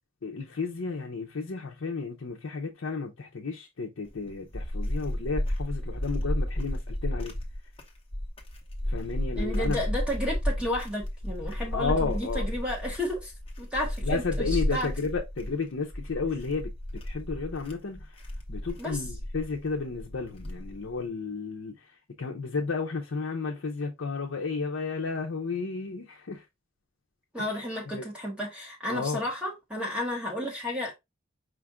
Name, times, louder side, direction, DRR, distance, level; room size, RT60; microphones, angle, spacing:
voice 1, 0.2-7.3 8.9-9.8 11.7-12.5 14.0-16.7 17.0-18.2 18.5-26.5 27.4-27.6 27.9-28.0 28.9-29.2, left 4 dB, 75° left, 0.6 m, -32 dB
sound 1, 4.1-20.9, left 1 dB, 25° left, 1.0 m, -32 dB
voice 2, 9.3-13.3 13.6-14.9 18.8-19.0 27.3-30.9, left 1 dB, 5° right, 1.1 m, -32 dB
5.1 x 2.4 x 3.5 m
head